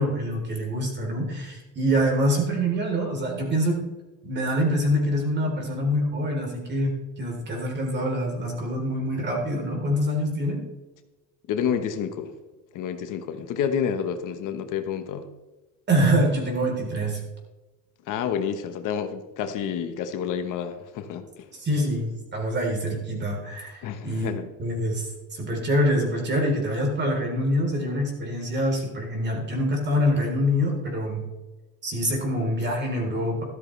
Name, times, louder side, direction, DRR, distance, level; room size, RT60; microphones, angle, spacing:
voice 1, 0.0-3.9 4.2-10.6 15.9-17.2 21.5-24.3 24.6-31.2 31.8-33.4, equal, 35° right, 3.9 m, -25 dB
voice 2, 11.5-12.3 12.7-15.3 18.1-21.5 23.8-24.5, left 8 dB, 75° left, 1.2 m, -29 dB
13.5 x 12.0 x 3.3 m
cardioid pair, 145°, 32 cm